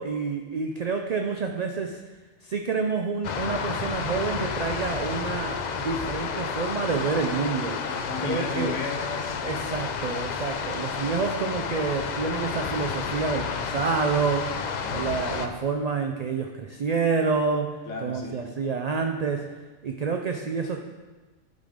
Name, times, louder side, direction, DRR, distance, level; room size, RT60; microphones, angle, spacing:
voice 1, 0.0-2.0 2.4-7.8 8.2-8.8 9.4-14.5 14.9-17.7 18.0-19.4 19.8-20.8, right 5 dB, 60° right, 4 dB, 0.4 m, -28 dB
sound 1, 3.2-15.5, left 6 dB, 55° left, 0.5 m, -31 dB
voice 2, 7.9-9.4 14.5-15.1 17.9-18.4, left 3 dB, 85° left, 0 dB, 1.6 m, -34 dB
10.5 x 3.9 x 5.0 m, 1.3 s
omnidirectional pair, 1.2 m